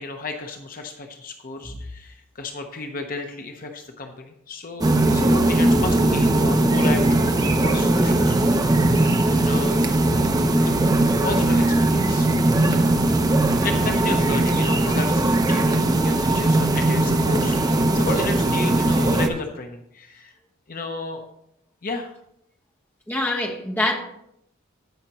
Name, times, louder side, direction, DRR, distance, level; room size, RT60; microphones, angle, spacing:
voice 1, 0.0-9.9 10.6-10.8 11.2-12.3 13.6-20.3 20.7-21.2 21.8-22.1, left 3 dB, 45° left, 0.8 m, -33 dB
sound 1, 4.8-19.3, right 2 dB, 20° right, 0.6 m, -19 dB
voice 2, 23.1-24.0, left 1 dB, 10° left, 1.1 m, -24 dB
16.0 x 5.7 x 2.9 m
head